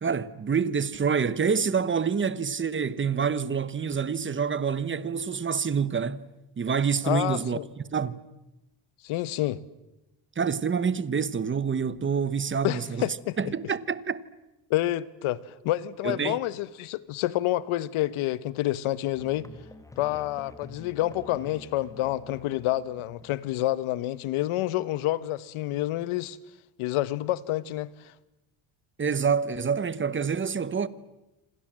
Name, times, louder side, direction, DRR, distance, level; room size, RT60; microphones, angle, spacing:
voice 1, 0.0-6.2 6.6-7.6 7.9-8.2 10.4-13.1 13.4-14.2 16.0-16.4 29.0-30.9, right 6 dB, 25° right, 1.1 m, -27 dB
voice 2, 7.0-7.6 9.0-9.6 12.6-13.5 14.7-15.4 15.6-19.4 20.0-26.4 26.8-27.9, left 15 dB, 80° left, 1.3 m, -28 dB
Musical instrument, 19.1-24.0, left 2 dB, 5° left, 1.8 m, -48 dB
27.5 x 26.5 x 7.6 m
cardioid pair, 125°, 49 cm